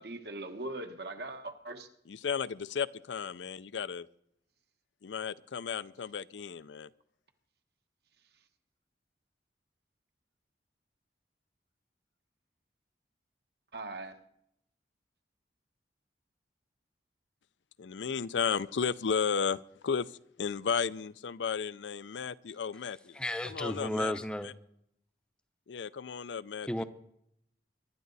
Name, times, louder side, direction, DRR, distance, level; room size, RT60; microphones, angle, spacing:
voice 1, 0.0-1.9 13.7-14.2, right 2 dB, 60° right, 1.4 m, -40 dB
voice 2, 2.1-4.1 5.0-6.9 17.8-20.1 20.4-24.1 25.7-26.8, left 6 dB, 85° left, 0.5 m, -34 dB
voice 3, 23.1-24.5 26.7-26.8, left 1 dB, 5° left, 0.6 m, -33 dB
24.0 x 11.5 x 4.1 m
head